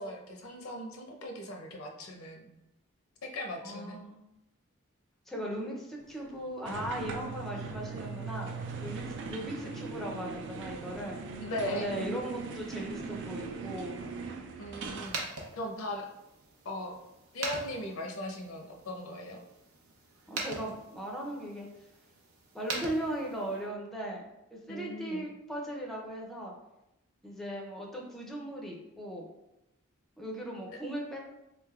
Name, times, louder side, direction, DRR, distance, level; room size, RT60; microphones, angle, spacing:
voice 1, 0.0-2.5 3.2-4.0 11.4-12.2 14.6-15.2 15.5-16.1 16.6-16.9 17.3-19.4 24.7-25.2, left 1 dB, 75° left, 1 dB, 0.6 m, -38 dB
voice 2, 3.6-4.3 5.3-11.2 11.7-14.0 20.3-21.7 22.5-24.3 24.5-26.5 27.2-29.3 30.2-31.2, right 1 dB, ahead, -2 dB, 0.5 m, -38 dB
sound 1, 6.6-15.2, right 4 dB, 60° right, 0.4 m, -40 dB
sound 2, 15.0-23.7, right 3 dB, 85° right, 0.7 m, -43 dB
3.8 x 3.3 x 2.3 m, 0.91 s
head